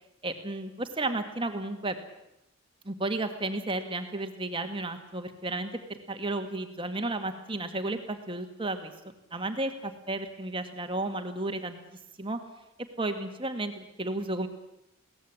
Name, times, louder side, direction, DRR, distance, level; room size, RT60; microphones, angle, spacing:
voice 1, 0.2-2.0 2.8-5.7 6.1-8.9 9.3-11.8 12.2-12.4 13.0-14.5, right 2 dB, 25° right, 7 dB, 2.0 m, -33 dB
22.5 x 18.0 x 8.7 m, 0.87 s
head